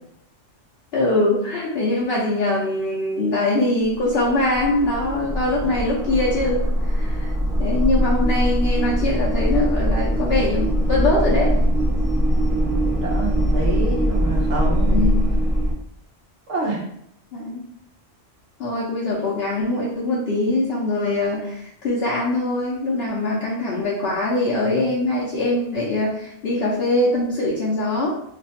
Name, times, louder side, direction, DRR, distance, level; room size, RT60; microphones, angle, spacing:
voice 1, 0.9-7.3 7.6-11.6 14.9-15.3 17.3-17.6 18.6-28.1, left 2 dB, 60° left, -5 dB, 0.9 m, -22 dB
sound 1, 3.9-15.7, equal, 15° right, 0.9 m, -21 dB
voice 2, 12.5-15.1 16.5-16.8, right 2 dB, 75° right, -2 dB, 1.2 m, -27 dB
3.2 x 2.2 x 4.1 m, 0.69 s
omnidirectional pair, 1.2 m